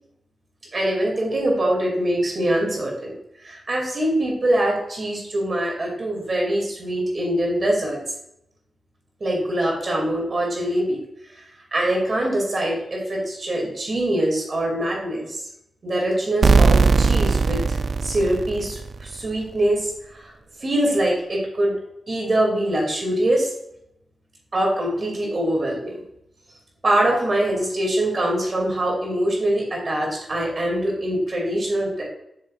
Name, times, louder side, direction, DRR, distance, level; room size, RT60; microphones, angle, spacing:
voice 1, 0.7-3.1 3.4-8.0 9.2-11.0 11.7-15.4 15.8-17.6 18.0-19.9 20.2-20.3 20.6-21.7 22.1-23.5 24.5-26.0 26.8-32.0, right 1 dB, 40° right, -1 dB, 2.4 m, -23 dB
sound 1, 16.4-19.1, right 4 dB, 60° right, 0.4 m, -18 dB
7.8 x 6.7 x 2.4 m, 0.79 s
wide cardioid pair, 115°, 0 cm